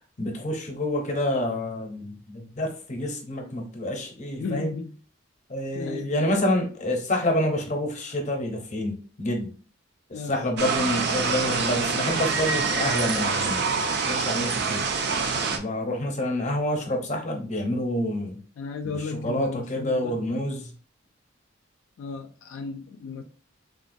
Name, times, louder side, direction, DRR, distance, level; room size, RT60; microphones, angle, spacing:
voice 1, 0.2-4.7 5.5-9.5 10.1-13.6 14.0-14.8 15.5-18.4 18.9-20.7, left 1 dB, 35° left, 0.6 m, -28 dB
voice 2, 4.4-4.9 5.7-6.2 10.1-10.4 18.6-20.2 22.0-23.2, left 4 dB, 75° left, 0.3 m, -34 dB
sound 1, 10.6-15.6, right 4 dB, 50° right, 0.4 m, -26 dB
3.7 x 2.1 x 2.6 m
head